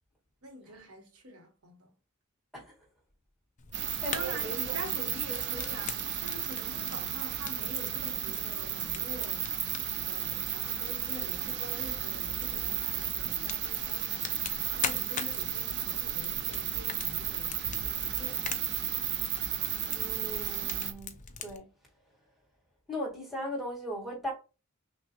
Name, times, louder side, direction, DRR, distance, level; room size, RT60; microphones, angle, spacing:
voice 1, 0.4-1.9 4.1-9.4 10.0-18.6, right 1 dB, 85° right, 1.2 m, -46 dB
Fire, 3.6-21.6, left 6 dB, 35° left, 0.5 m, -44 dB
voice 2, 3.7-4.8 19.8-21.7 22.9-24.3, equal, ahead, 1.6 m, -38 dB
sound 1, 3.7-20.9, right 9 dB, 55° right, 0.6 m, -33 dB
6.0 x 2.3 x 2.9 m
head